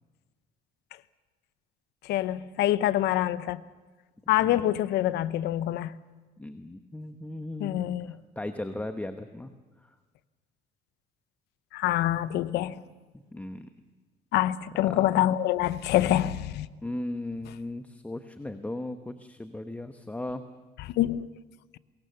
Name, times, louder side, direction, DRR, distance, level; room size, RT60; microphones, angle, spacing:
voice 1, 2.0-3.6 4.3-5.9 7.6-8.1 11.7-12.8 14.3-16.7 21.0-21.3, left 13 dB, 80° left, 0.8 m, -25 dB
voice 2, 6.4-9.5 9.8-9.9 13.3-13.7 14.7-15.3 16.8-20.4, left 1 dB, 10° left, 1.1 m, -37 dB
24.0 x 22.0 x 6.8 m
cardioid pair, 110°, 17 cm